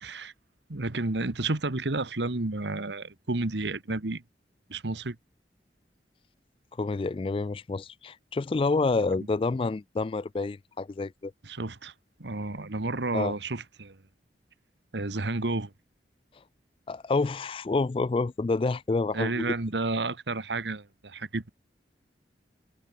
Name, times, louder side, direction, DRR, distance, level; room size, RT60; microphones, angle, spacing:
voice 1, 0.0-0.3 0.7-4.2 4.7-5.2 11.4-11.9 12.2-14.0 14.9-15.7 19.1-21.5, right 2 dB, 85° right, 1.5 m, -31 dB
voice 2, 6.8-11.3 13.1-13.3 16.9-19.5, left 3 dB, 30° left, 0.3 m, -28 dB
head